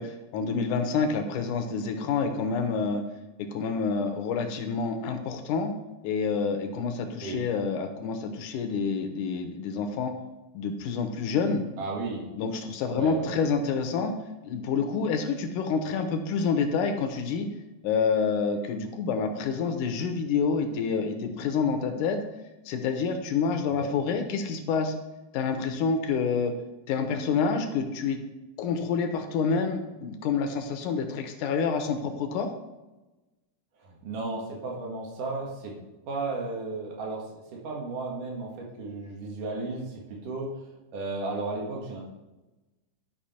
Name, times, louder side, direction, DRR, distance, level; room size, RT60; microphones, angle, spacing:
voice 1, 0.0-3.0 3.4-5.7 6.0-10.1 10.5-11.6 12.4-14.1 14.4-17.5 17.8-22.2 22.7-24.9 25.3-26.5 26.9-28.2 28.6-32.5, left 5 dB, 85° left, 6 dB, 2.4 m, -28 dB
voice 2, 11.8-12.3 12.9-13.4 23.7-23.9 33.8-35.7 36.0-37.2 37.5-40.5 40.9-42.0, right 3 dB, 90° right, -2 dB, 3.3 m, -34 dB
11.5 x 5.5 x 4.3 m, 1.1 s
omnidirectional pair, 3.5 m